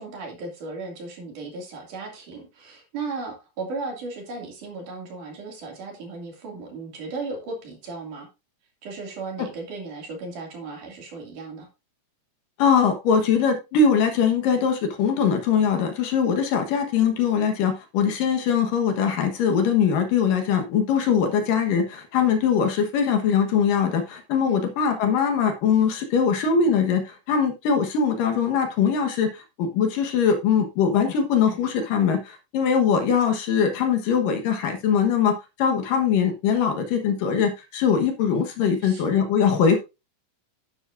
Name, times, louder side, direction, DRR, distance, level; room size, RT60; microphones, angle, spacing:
voice 1, 0.0-8.3 8.8-11.7 24.5-24.7 38.8-39.2, right 3 dB, 60° right, 1 dB, 3.8 m, -36 dB
voice 2, 12.6-39.8, left 6 dB, 70° left, 5 dB, 2.8 m, -22 dB
10.5 x 9.9 x 2.6 m, 0.26 s
omnidirectional pair, 4.3 m